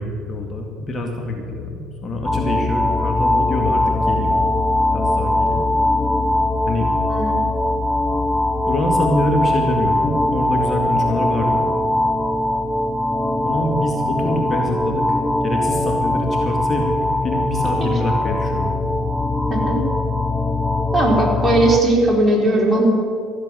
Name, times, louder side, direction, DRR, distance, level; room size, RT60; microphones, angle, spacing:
voice 1, 0.0-4.5 4.9-5.8 6.7-6.9 8.7-11.6 13.4-15.1 15.4-16.9 17.2-18.7, left 1 dB, 30° left, 1 dB, 2.1 m, -25 dB
sound 1, 2.2-21.8, left 2 dB, ahead, 0.9 m, -21 dB
voice 2, 19.5-19.9 20.9-22.9, right 1 dB, 20° right, -2 dB, 4.2 m, -18 dB
14.5 x 7.5 x 9.2 m, 2.3 s
hypercardioid pair, 65°, 0 cm